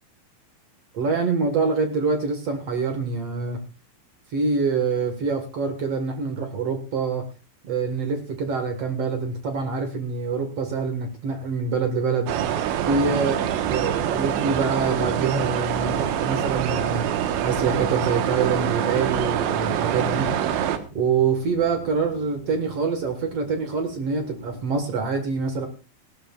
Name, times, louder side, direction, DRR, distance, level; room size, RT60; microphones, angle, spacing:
voice 1, 0.9-3.6 4.3-7.3 7.6-12.3 12.9-13.4 13.7-17.1 17.4-20.3 20.9-25.7, right 4 dB, 55° right, 6 dB, 1.7 m, -25 dB
sound 1, 12.3-20.8, right 10 dB, 85° right, 3.5 m, -25 dB
sound 2, 17.5-24.6, equal, 30° left, 6.5 m, -45 dB
18.5 x 16.5 x 2.4 m, 0.31 s
omnidirectional pair, 5.0 m